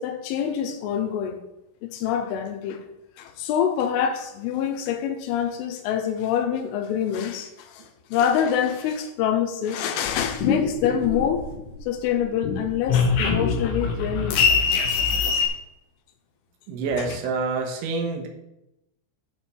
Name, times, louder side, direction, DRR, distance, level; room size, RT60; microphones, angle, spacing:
voice 1, 0.0-1.4 1.8-2.9 3.2-11.4 11.8-14.4 15.2-15.5 17.0-17.2, left 9 dB, 90° left, 3.4 m, -26 dB
sound 1, 10.1-11.8 12.1-15.5, left 5 dB, 75° left, 2.6 m, -23 dB
voice 2, 16.7-18.3, right 4 dB, 80° right, 3.6 m, -27 dB
8.4 x 4.5 x 6.9 m
omnidirectional pair, 5.5 m